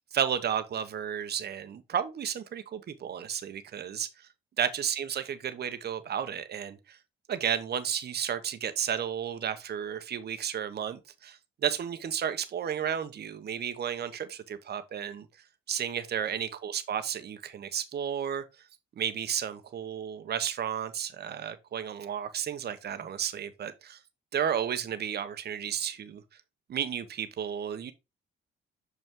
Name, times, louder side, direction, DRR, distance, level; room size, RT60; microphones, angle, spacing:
voice 1, 0.1-4.1 4.6-7.0 7.3-15.3 15.7-18.4 19.0-24.0 24.3-26.2 26.7-27.9, right 8 dB, 55° right, 1.0 m, -32 dB
6.2 x 5.5 x 3.7 m
cardioid pair, 90°, 20 cm